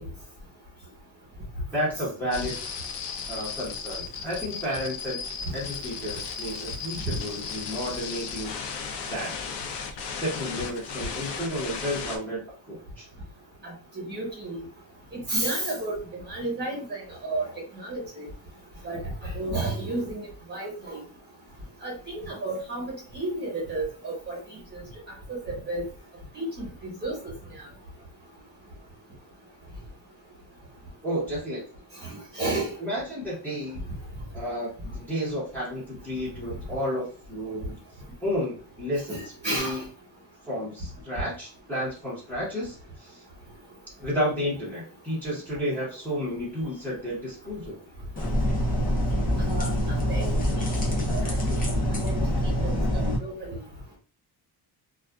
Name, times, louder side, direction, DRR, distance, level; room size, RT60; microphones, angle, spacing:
voice 1, 1.7-2.6 3.3-5.2 5.5-8.8 9.1-9.3 10.0-12.4 12.7-13.1 31.0-31.6 32.8-33.8 34.3-37.8 38.2-39.2 39.5-39.9 40.4-43.2 44.0-47.8 48.5-48.6, equal, 5° left, -9 dB, 1.0 m, -32 dB
sound 1, 2.3-12.2, left 6 dB, 90° left, 0.6 m, -36 dB
voice 2, 14.1-14.6 15.3-17.5 17.7-18.2 18.8-20.2 20.5-21.0 21.8-24.4 25.3-25.8 26.3-26.7 27.0-27.3 32.0-32.7 39.1-39.8 49.4-49.7 50.0-50.3 51.1-51.6 52.0-53.6, right 2 dB, 25° right, -2 dB, 1.1 m, -32 dB
sound 2, 48.2-53.2, equal, 20° left, 0.6 m, -25 dB
2.4 x 2.3 x 2.3 m, 0.40 s
cardioid pair, 160°, 40 cm